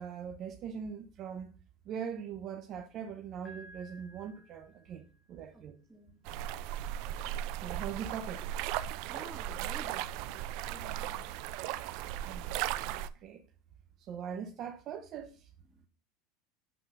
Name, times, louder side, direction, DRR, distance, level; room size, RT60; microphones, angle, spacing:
voice 1, 0.0-1.5 1.8-5.8 7.6-8.4 12.2-12.6 12.9-13.4 14.0-15.5, right 7 dB, 40° right, 1.0 m, -41 dB
Piano, 3.4-5.4, equal, 25° left, 2.0 m, -55 dB
voice 2, 5.9-6.2 9.1-10.0 10.6-11.2 15.7-15.9, right 2 dB, 10° right, 2.2 m, -50 dB
sound 1, 6.2-13.1, right 12 dB, 60° right, 0.5 m, -37 dB
8.0 x 3.8 x 6.0 m
supercardioid pair, 140°, 0 cm